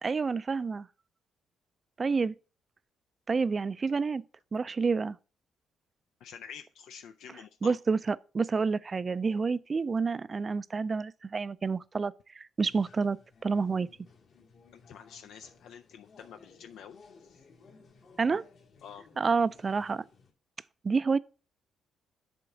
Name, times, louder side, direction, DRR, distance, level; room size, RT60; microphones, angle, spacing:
voice 1, 0.0-0.9 2.0-2.3 3.3-4.2 4.5-5.2 7.6-13.2 13.4-13.9 18.2-18.4 19.2-20.0 20.8-21.2, right 4 dB, 35° right, 0.4 m, -29 dB
voice 2, 6.2-7.8 14.7-17.4 18.8-19.0, left 7 dB, 80° left, 0.4 m, -48 dB
sound 1, 12.7-20.3, left 4 dB, 60° left, 1.7 m, -58 dB
7.8 x 3.7 x 6.3 m
cardioid pair, 90°, 0 cm